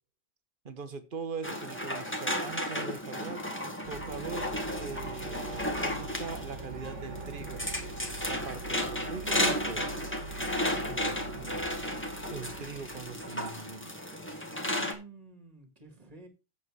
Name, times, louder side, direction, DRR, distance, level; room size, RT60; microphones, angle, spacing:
voice 1, 0.6-3.4 3.9-7.6 8.3-9.9 12.3-13.9, right 5 dB, 50° right, 1.3 m, -41 dB
sound 1, 1.4-14.9, left 1 dB, 10° left, 1.7 m, -34 dB
sound 2, 3.8-13.5, right 3 dB, 80° right, 2.0 m, -43 dB
voice 2, 10.8-11.7 14.5-16.3, right 2 dB, 30° right, 2.2 m, -49 dB
8.1 x 7.1 x 4.7 m
omnidirectional pair, 1.2 m